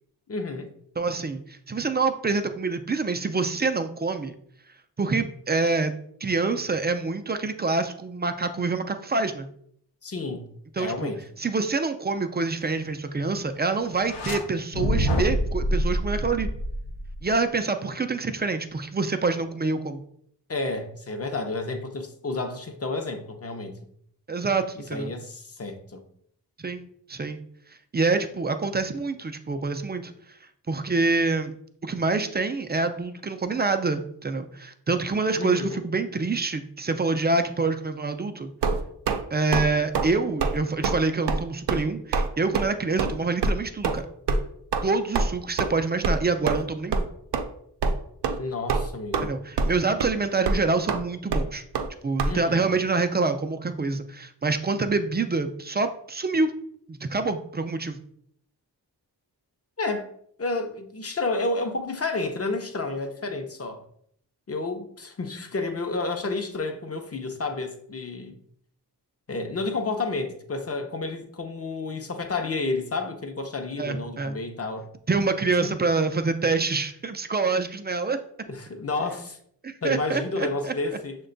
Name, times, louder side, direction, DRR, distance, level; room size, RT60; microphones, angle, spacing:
voice 1, 0.3-0.7 10.0-10.5 10.8-11.2 20.5-23.8 24.9-26.0 35.3-35.8 48.4-49.4 52.3-52.7 59.8-60.1 60.4-63.8 64.5-68.3 69.3-74.9 75.6-75.8 78.5-79.4 79.8-81.3, left 3 dB, 35° left, 0.6 m, -30 dB
voice 2, 1.0-4.3 5.0-5.9 6.2-9.5 10.8-11.1 11.4-16.5 17.2-20.0 24.3-25.1 26.6-27.4 27.9-30.1 30.7-31.5 31.8-38.5 39.3-44.0 44.8-47.1 49.2-51.6 52.0-56.5 56.9-58.0 73.8-74.4 75.1-78.2 79.6-80.7, right 3 dB, 25° right, 0.3 m, -26 dB
sound 1, 13.9-14.4 14.7-17.3, equal, 80° left, 0.7 m, -26 dB
sound 2, 38.6-39.2 39.5-39.7 39.9-40.1 40.4-40.6 40.8-41.0 41.3-41.4 41.7-41.8 42.1-42.3 42.5-42.7 43.0-43.1 43.4-43.5 43.8-44.0 44.3-44.4 44.7-44.8 45.1-45.3 45.6-45.7 46.0-46.2 46.5-46.6 46.9-47.0 47.3-47.4 47.8-47.9 48.2-48.4 48.7-49.3 49.6-49.7 50.0-50.1 50.5-50.6 50.9-51.0 51.3-51.4 51.7-51.9 52.2-52.3, right 4 dB, 75° right, 0.5 m, -24 dB
6.1 x 2.2 x 3.8 m
wide cardioid pair, 65°, 41 cm